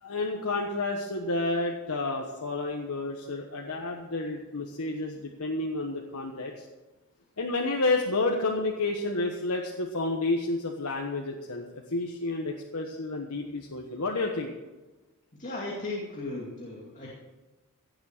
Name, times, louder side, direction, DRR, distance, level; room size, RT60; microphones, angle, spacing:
voice 1, 0.0-6.6 7.4-14.5, left 2 dB, 80° left, 1 dB, 1.3 m, -30 dB
voice 2, 15.4-17.1, left 2 dB, 35° left, -4 dB, 2.4 m, -36 dB
16.5 x 7.5 x 6.6 m, 1.1 s
head